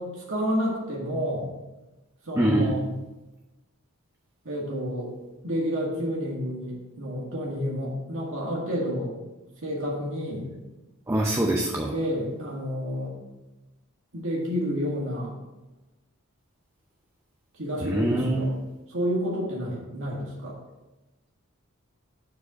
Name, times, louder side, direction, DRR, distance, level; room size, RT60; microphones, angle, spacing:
voice 1, 0.0-1.5 2.2-2.9 4.5-5.1 5.4-9.1 9.6-10.5 11.9-13.2 14.1-15.3 17.5-18.5 18.9-20.6, equal, 65° right, -3 dB, 1.9 m, -30 dB
voice 2, 2.4-2.7 11.1-11.9 17.8-18.5, right 1 dB, 15° right, 0 dB, 0.7 m, -24 dB
7.2 x 4.7 x 5.6 m, 1.0 s
head